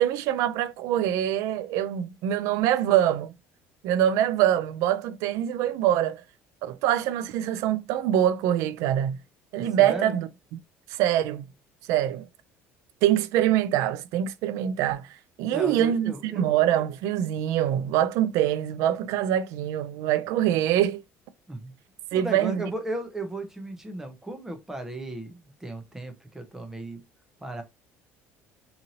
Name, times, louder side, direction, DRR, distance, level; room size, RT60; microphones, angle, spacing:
voice 1, 0.0-3.3 3.8-6.2 6.6-9.2 9.5-10.3 10.9-11.5 11.9-12.3 13.0-15.1 15.4-21.0 22.1-22.6, right 11 dB, 70° right, 0.3 m, -24 dB
voice 2, 9.8-10.2 15.5-16.4 21.5-21.7 22.1-27.0 27.4-27.6, right 1 dB, 10° right, 0.6 m, -35 dB
2.9 x 2.6 x 2.7 m
cardioid pair, 150°, 5 cm